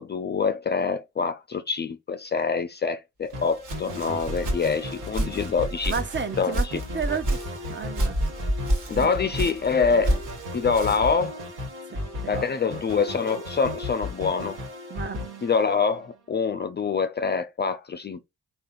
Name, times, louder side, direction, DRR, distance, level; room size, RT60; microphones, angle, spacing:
voice 1, 0.0-5.9 6.4-6.8 8.9-10.2 10.5-11.4 12.3-14.6 15.4-18.3, left 5 dB, 25° left, 0.4 m, -25 dB
Walk footsteps, 3.3-11.2, right 1 dB, 50° right, 1.6 m, -30 dB
sound 1, 3.3-16.3, left 1 dB, 70° right, 1.4 m, -36 dB
voice 2, 5.9-7.4 7.7-8.2 8.9-9.1 11.9-12.0 12.2-12.5 14.9-15.3, right 6 dB, 30° right, 0.7 m, -32 dB
3.6 x 2.4 x 2.5 m
hypercardioid pair, 40°, 39 cm